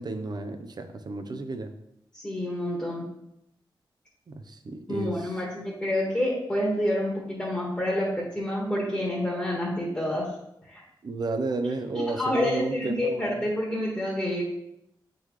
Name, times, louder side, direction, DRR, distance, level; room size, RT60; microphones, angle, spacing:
voice 1, 0.0-1.7 4.3-5.3 11.0-13.4, right 3 dB, 50° right, 7 dB, 0.6 m, -32 dB
voice 2, 2.1-3.1 4.9-10.3 10.7-10.8 11.9-14.4, left 1 dB, 15° left, -4 dB, 1.4 m, -28 dB
7.9 x 3.9 x 3.1 m, 0.80 s
wide cardioid pair, 125°, 9 cm